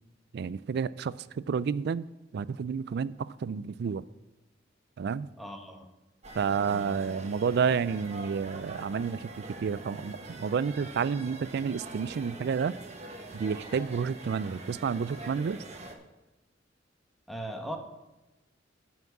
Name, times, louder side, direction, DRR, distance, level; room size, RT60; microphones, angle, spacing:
voice 1, 0.3-2.1 2.3-4.0 5.0-5.3 6.3-12.8 13.3-15.6, right 6 dB, 60° right, 0.3 m, -30 dB
voice 2, 5.4-5.9 17.3-17.8, right 1 dB, ahead, 1.1 m, -38 dB
sound 1, 6.2-16.0, right 2 dB, 35° right, 1.2 m, -44 dB
9.2 x 5.9 x 7.2 m
head